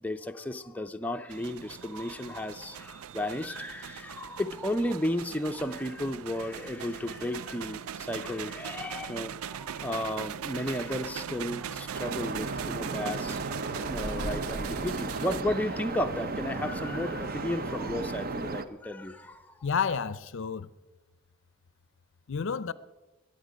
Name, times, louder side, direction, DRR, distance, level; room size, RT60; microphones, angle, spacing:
voice 1, 0.0-19.4, left 1 dB, 5° left, 0.5 m, -34 dB
sound 1, 1.3-15.4, right 8 dB, 90° right, 0.4 m, -40 dB
sound 2, 11.9-18.6, right 3 dB, 45° right, 0.7 m, -35 dB
voice 2, 19.6-20.7 22.3-22.7, left 6 dB, 65° left, 0.5 m, -30 dB
22.0 x 9.1 x 5.1 m
head